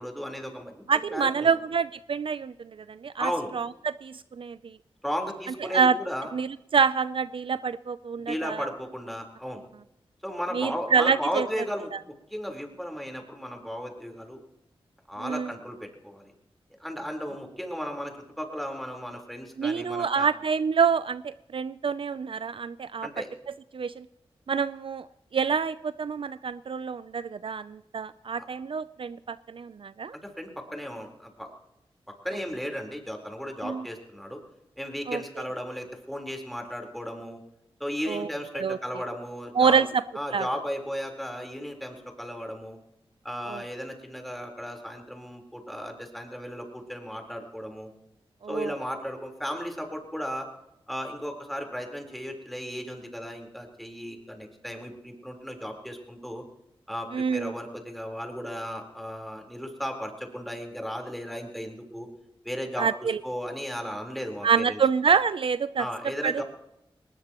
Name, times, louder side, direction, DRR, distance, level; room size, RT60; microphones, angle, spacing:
voice 1, 0.0-0.8 1.1-1.5 3.2-3.5 5.0-6.3 8.2-9.6 10.2-14.4 15.1-16.3 16.8-20.3 23.0-23.3 28.4-28.5 30.2-31.5 32.2-34.4 34.8-37.4 37.8-39.8 40.1-42.8 43.2-47.9 48.5-50.5 50.9-56.4 56.9-62.1 62.4-62.9 63.2-64.8 65.8-66.4, equal, ahead, 2 dB, 3.9 m, -35 dB
voice 2, 0.9-4.8 5.6-6.0 6.3-8.7 10.5-11.5 15.2-15.5 19.6-23.1 23.7-24.1 24.5-25.1 25.3-30.2 33.6-33.9 35.1-35.2 38.1-38.3 38.6-38.8 39.5-40.0 40.3-40.5 43.5-43.6 48.4-48.7 57.1-57.5 62.8-63.2 64.4-65.9 66.2-66.4, right 6 dB, 60° right, 15 dB, 0.4 m, -26 dB
20.0 x 19.5 x 3.0 m, 0.85 s
cardioid pair, 60°, 10 cm